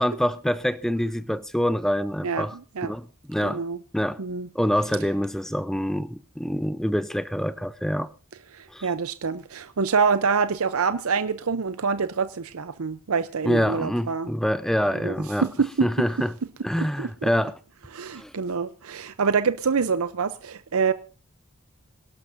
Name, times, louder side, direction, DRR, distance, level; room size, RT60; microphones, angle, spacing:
voice 1, 0.0-2.6 2.8-3.6 3.9-4.2 4.5-8.1 8.7-8.9 13.4-15.5 15.8-16.3 16.6-17.6 18.2-18.3, equal, ahead, 0.6 m, -26 dB
voice 2, 3.4-3.8 4.2-4.5 8.5-14.3 14.9-15.1 15.4-15.9 16.8-17.3 17.9-20.9, right 5 dB, 85° right, 0.7 m, -26 dB
26.5 x 11.5 x 2.6 m
head